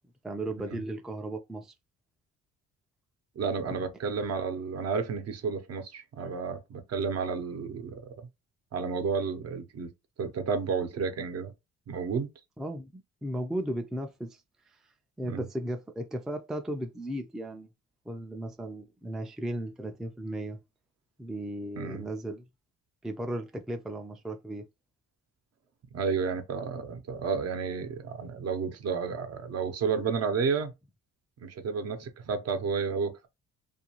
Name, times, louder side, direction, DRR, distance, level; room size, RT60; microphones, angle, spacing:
voice 1, 0.2-1.7 3.7-3.8 12.6-14.4 14.7-14.8 15.2-17.7 18.1-20.6 21.2-22.4 23.0-24.7, right 1 dB, ahead, 0.4 m, -36 dB
voice 2, 3.4-8.3 8.7-9.9 10.2-11.5 11.9-12.3 15.3-15.5 21.8-22.1 25.9-30.7 31.4-33.3, right 5 dB, 55° right, 0.7 m, -31 dB
2.5 x 2.3 x 2.9 m
cardioid pair, 90°, 30 cm